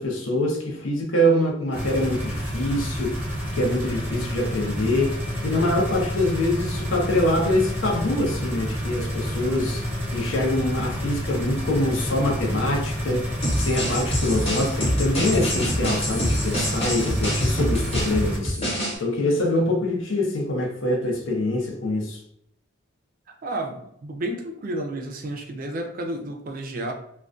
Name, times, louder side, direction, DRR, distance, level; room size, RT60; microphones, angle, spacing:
voice 1, 0.0-3.2 3.5-5.2 5.4-9.9 10.1-13.3 13.6-22.2, left 1 dB, 70° left, 0.6 m, -24 dB
sound 1, 1.7-18.4, equal, 10° right, 0.7 m, -29 dB
sound 2, 13.4-19.0, equal, 30° left, 0.8 m, -26 dB
voice 2, 23.3-26.9, right 1 dB, 45° right, 0.4 m, -31 dB
2.3 x 2.2 x 2.5 m
head